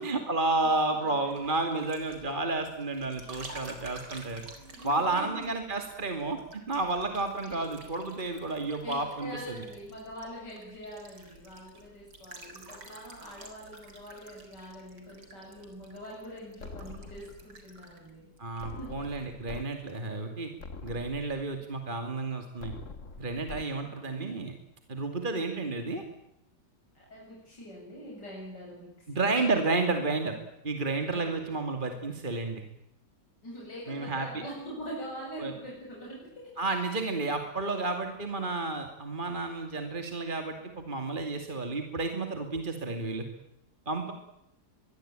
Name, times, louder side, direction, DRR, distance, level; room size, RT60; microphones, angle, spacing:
voice 1, 0.0-4.4 4.8-9.6 18.4-20.5 20.8-22.7 23.2-24.5 24.9-26.0 29.1-30.3 30.6-32.6 33.9-34.4 35.4-35.5 36.6-43.3 43.9-44.1, right 3 dB, 30° right, 5 dB, 2.7 m, -31 dB
voice 2, 0.9-1.4 4.5-5.5 7.5-7.7 8.8-18.3 18.8-18.9 23.7-24.3 26.9-29.5 31.1-31.5 33.4-36.6, equal, 85° left, -3 dB, 8.2 m, -44 dB
sound 1, 0.9-19.3 19.5-20.0, right 2 dB, 75° right, 5.2 m, -51 dB
sound 2, 16.6-17.6 18.6-19.6 20.1-20.2 20.6-21.6 22.6-23.6, left 4 dB, 50° left, 2.0 m, -44 dB
24.5 x 23.0 x 9.0 m, 0.84 s
omnidirectional pair, 1.8 m